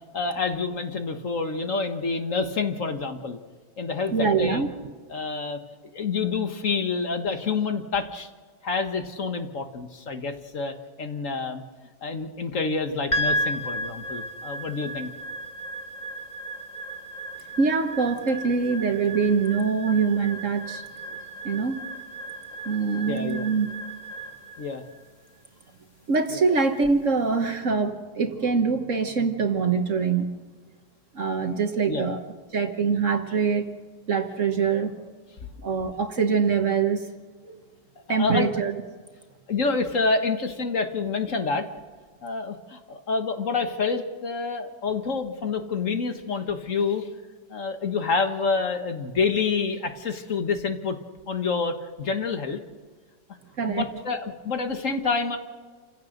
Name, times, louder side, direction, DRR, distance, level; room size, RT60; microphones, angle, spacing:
voice 1, 0.1-3.4 3.8-4.7 5.1-8.3 8.6-11.6 12.0-15.1 23.1-23.4 24.6-24.8 31.9-32.1 38.1-38.5 39.5-41.6 42.2-47.1 47.5-51.0 51.3-52.6 53.7-55.4, left 4 dB, 50° left, 6 dB, 1.8 m, -28 dB
voice 2, 4.1-4.7 17.6-20.8 21.4-21.8 22.6-23.7 26.1-30.4 31.1-32.2 32.5-33.7 34.1-35.1 35.6-37.1 37.4-37.6 38.1-38.7 53.6-53.8, right 5 dB, 50° right, 6 dB, 1.5 m, -24 dB
sound 1, 13.1-27.5, right 1 dB, 25° left, 1.9 m, -35 dB
28.5 x 16.5 x 6.6 m, 1.4 s
omnidirectional pair, 1.8 m